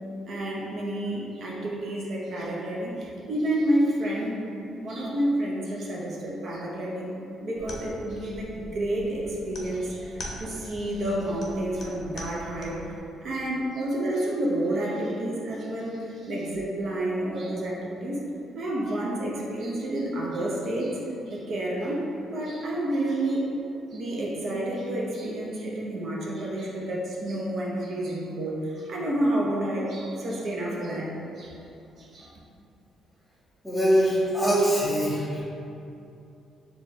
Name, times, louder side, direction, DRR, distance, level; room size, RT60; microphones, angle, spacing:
voice 1, 0.3-4.4 4.8-7.2 7.4-12.9 13.2-18.2 18.5-21.0 21.3-23.5 23.9-31.6 32.0-32.4, right 1 dB, 60° right, -3 dB, 0.5 m, -29 dB
sound 1, 7.6-13.0, left 1 dB, 55° left, 0.5 m, -42 dB
voice 2, 33.6-35.4, equal, ahead, -9 dB, 1.1 m, -23 dB
4.1 x 2.3 x 2.9 m, 2.7 s
cardioid pair, 90°, 0 cm